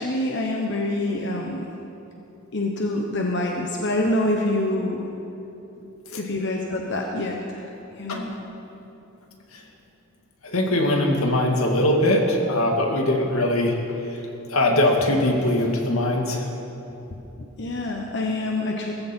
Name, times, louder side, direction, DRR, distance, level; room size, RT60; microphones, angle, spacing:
voice 1, 0.0-1.7 2.5-5.0 6.2-7.7 8.0-8.4 17.4-18.9, left 1 dB, 55° left, 0 dB, 1.2 m, -26 dB
voice 2, 10.4-13.8 14.5-16.5, left 1 dB, 85° left, 1 dB, 2.2 m, -21 dB
19.0 x 15.0 x 4.5 m, 2.9 s
head